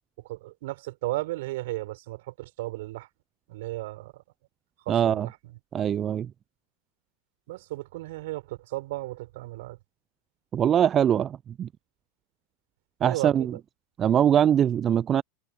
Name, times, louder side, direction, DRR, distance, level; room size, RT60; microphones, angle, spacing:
voice 1, 0.2-3.1 3.5-4.2 4.8-5.6 7.5-9.8 13.0-13.6, right 18 dB, 60° right, 5.7 m, -35 dB
voice 2, 4.9-5.3 5.7-6.3 10.5-11.7 13.0-13.5 14.0-15.2, right 9 dB, 30° right, 0.5 m, -22 dB
figure-of-eight pair, 90°, 0 cm